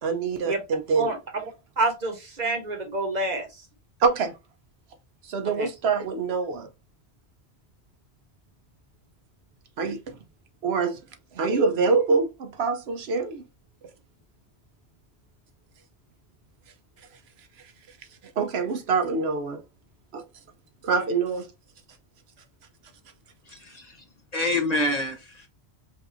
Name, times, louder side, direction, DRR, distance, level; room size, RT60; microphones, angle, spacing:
voice 1, 0.0-1.1 4.0-4.3 5.2-6.7 9.8-10.2 10.6-11.0 11.3-13.4 18.4-19.6 20.1-20.2 20.8-21.5, right 4 dB, 70° right, 0.9 m, -25 dB
voice 2, 1.8-3.6 5.4-5.7, right 2 dB, 40° right, 1.0 m, -27 dB
voice 3, 23.4-24.0 24.3-25.5, left 2 dB, 40° left, 0.9 m, -27 dB
5.3 x 2.5 x 2.6 m
omnidirectional pair, 1.1 m